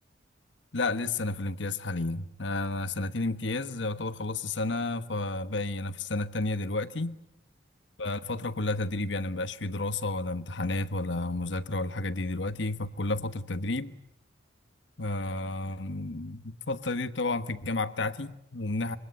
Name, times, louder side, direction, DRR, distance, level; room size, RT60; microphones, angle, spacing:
voice 1, 0.7-7.2 8.0-14.0 15.0-19.0, left 2 dB, 75° left, 1.3 m, -31 dB
25.0 x 23.5 x 9.7 m
head